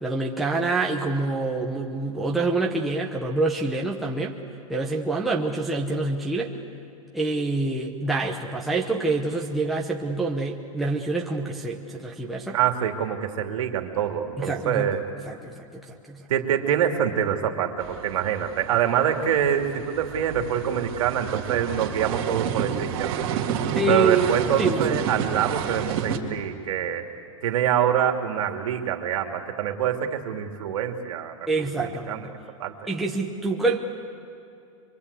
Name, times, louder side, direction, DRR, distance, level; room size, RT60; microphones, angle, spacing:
voice 1, 0.0-4.4 4.7-6.5 7.1-12.6 14.4-14.9 15.3-16.3 23.8-25.1 31.5-32.3 32.9-33.8, right 3 dB, ahead, -2 dB, 0.9 m, -26 dB
voice 2, 12.5-15.1 16.3-23.4 23.9-27.1 27.4-32.3 32.6-32.7, right 9 dB, 65° right, 4 dB, 2.6 m, -25 dB
sound 1, 17.8-26.2, right 8 dB, 45° right, 2.3 m, -30 dB
24.5 x 24.5 x 8.3 m, 2.5 s
supercardioid pair, 175°, 18 cm